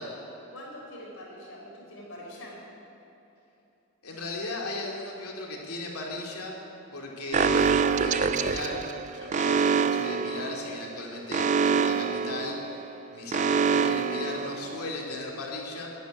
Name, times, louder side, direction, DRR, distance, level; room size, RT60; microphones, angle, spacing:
voice 1, 0.0-2.7, left 1 dB, 70° left, -2 dB, 4.3 m, -44 dB
voice 2, 4.0-6.6 6.9-8.8 9.1-12.6 13.1-15.9, left 2 dB, 85° left, -1 dB, 2.7 m, -36 dB
Alarm, 7.3-15.1, right 6 dB, 35° right, 0.3 m, -26 dB
11.0 x 10.0 x 9.9 m, 2.9 s
head